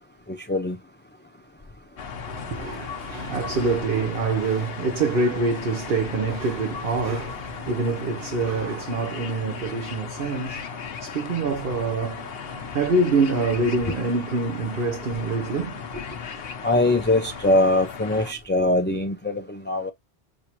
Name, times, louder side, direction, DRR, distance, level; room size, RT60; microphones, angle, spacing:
voice 1, 0.3-0.8 16.6-19.9, left 2 dB, 15° left, 0.4 m, -22 dB
sound 1, 2.0-18.3, left 6 dB, 75° left, 1.0 m, -36 dB
voice 2, 2.2-16.0, right 3 dB, 65° right, 1.0 m, -26 dB
6.4 x 2.7 x 2.9 m
omnidirectional pair, 1.0 m